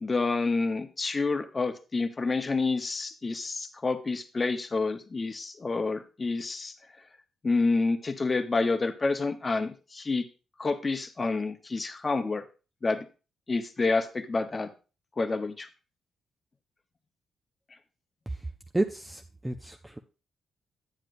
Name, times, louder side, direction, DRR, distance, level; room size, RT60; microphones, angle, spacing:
voice 1, 0.0-6.7 7.4-10.3 10.6-12.4 12.8-13.1 13.5-14.7 15.2-15.7, left 3 dB, 25° left, 9 dB, 0.8 m, -28 dB
voice 2, 18.7-20.0, right 2 dB, 10° right, 6 dB, 0.5 m, -31 dB
9.5 x 8.9 x 2.6 m, 0.33 s
cardioid pair, 135°, 0 cm